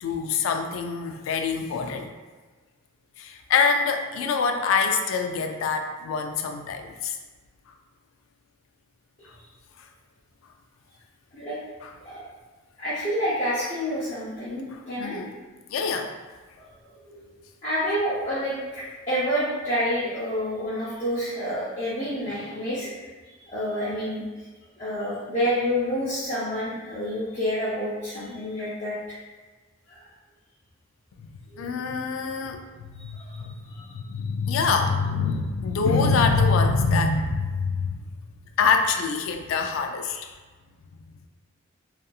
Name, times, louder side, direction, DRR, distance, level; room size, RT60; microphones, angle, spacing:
voice 1, 0.0-2.1 3.2-7.2 11.8-11.9 14.7-15.3 15.7-16.1 31.2-31.3 31.6-38.0 38.6-40.3, left 4 dB, 75° left, 6 dB, 0.3 m, -25 dB
voice 2, 12.8-15.2 16.6-17.3 17.6-22.9 23.5-24.2 24.8-29.2 29.9-30.0 31.5-31.7 33.0-33.9, equal, 35° left, -12 dB, 0.6 m, -29 dB
2.7 x 2.4 x 2.3 m, 1.4 s
head